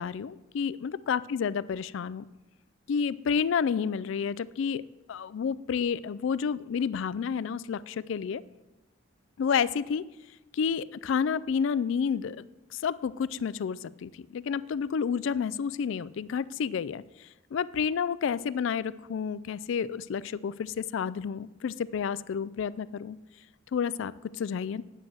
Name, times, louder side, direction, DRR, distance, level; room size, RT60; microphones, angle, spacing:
voice 1, 0.0-2.3 2.9-4.8 5.1-8.4 9.4-10.0 10.5-12.5 12.7-23.2 23.7-24.8, left 6 dB, 65° left, 18 dB, 0.3 m, -30 dB
9.3 x 7.7 x 6.1 m, 1.1 s
head